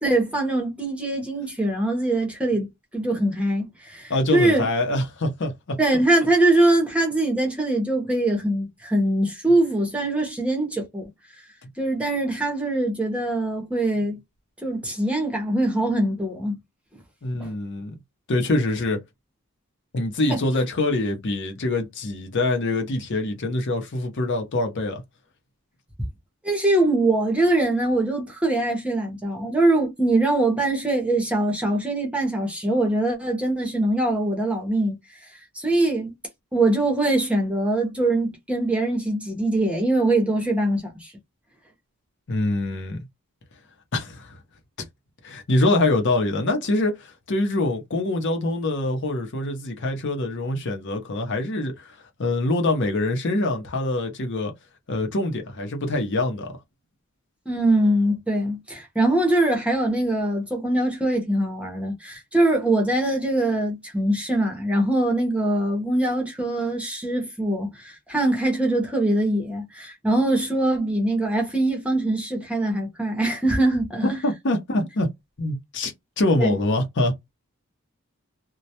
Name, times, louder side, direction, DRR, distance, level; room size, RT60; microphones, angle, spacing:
voice 1, 0.0-4.6 5.8-11.0 11.8-14.2 14.6-16.5 17.4-17.5 20.3-20.4 26.4-35.0 35.6-36.1 36.5-41.1 57.5-74.2 76.4-76.6, right 1 dB, 5° right, 0.6 m, -23 dB
voice 2, 4.1-5.8 17.2-17.9 18.3-19.0 19.9-25.0 42.3-43.0 43.9-44.4 45.2-54.5 54.9-56.5 74.2-75.1 75.4-77.1, left 2 dB, 55° left, 0.6 m, -24 dB
2.2 x 2.0 x 2.7 m
head